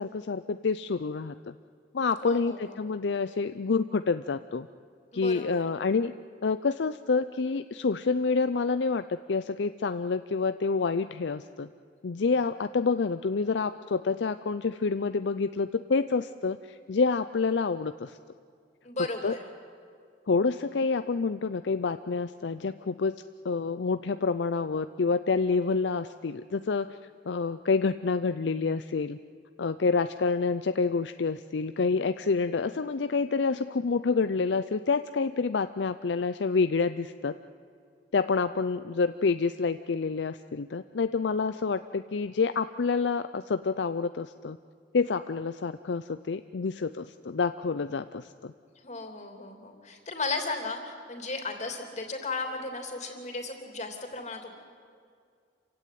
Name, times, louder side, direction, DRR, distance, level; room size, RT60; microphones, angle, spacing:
voice 1, 0.0-1.5 1.9-4.7 5.1-6.1 6.4-11.7 12.0-18.2 19.0-19.4 20.3-27.0 27.3-29.2 29.6-37.3 38.1-44.6 44.9-48.5, left 4 dB, 70° left, 11 dB, 0.5 m, -28 dB
voice 2, 2.2-2.7 5.1-5.6 18.8-19.4 48.8-54.5, left 3 dB, 40° left, 4 dB, 3.1 m, -35 dB
27.5 x 16.5 x 9.4 m, 2.2 s
head